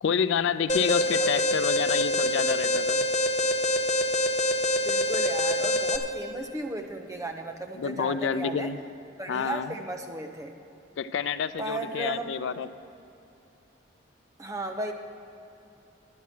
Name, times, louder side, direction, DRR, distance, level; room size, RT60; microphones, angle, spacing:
voice 1, 0.0-3.1 7.7-8.8 9.3-9.7 11.0-12.7, left 7 dB, 70° left, 13 dB, 0.4 m, -28 dB
Alarm, 0.7-6.0, left 1 dB, 35° left, 0.6 m, -25 dB
voice 2, 4.8-8.7 9.2-10.5 11.6-12.3 14.4-14.9, right 2 dB, 15° right, 3 dB, 0.7 m, -35 dB
10.5 x 9.4 x 6.0 m, 2.8 s
head